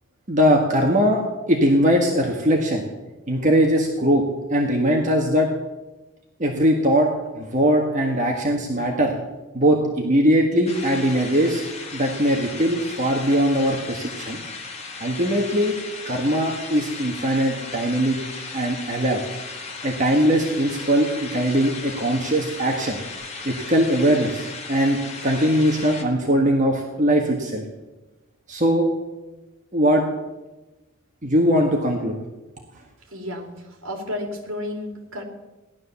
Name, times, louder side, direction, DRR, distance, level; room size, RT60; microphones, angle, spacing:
voice 1, 0.3-1.2 1.5-2.8 3.3-4.2 4.5-5.5 6.4-7.1 7.3-9.1 9.5-11.6 11.9-14.4 15.0-15.7 16.0-18.2 18.5-19.2 19.8-23.0 23.4-27.6 28.5-28.9 29.7-30.0 31.2-32.1, equal, 35° right, 0 dB, 1.6 m, -20 dB
sound 1, 10.7-26.0, left 4 dB, 30° left, 1.9 m, -36 dB
voice 2, 33.0-35.2, left 1 dB, 60° right, 3 dB, 3.1 m, -32 dB
17.5 x 11.5 x 7.0 m, 1.1 s
head